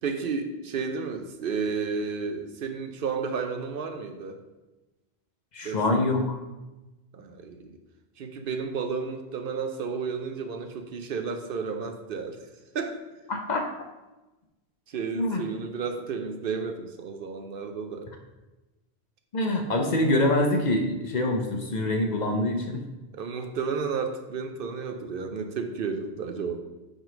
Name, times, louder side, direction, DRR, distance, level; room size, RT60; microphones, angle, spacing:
voice 1, 0.0-4.4 5.6-6.2 7.1-7.8 8.2-12.4 12.7-13.0 14.9-18.1 23.1-26.6, right 5 dB, 65° right, 6 dB, 0.7 m, -32 dB
voice 2, 5.5-6.4 13.3-13.7 15.1-15.4 19.3-22.8, left 1 dB, 50° left, 3 dB, 0.7 m, -25 dB
5.1 x 3.8 x 5.0 m, 1.1 s
omnidirectional pair, 1.1 m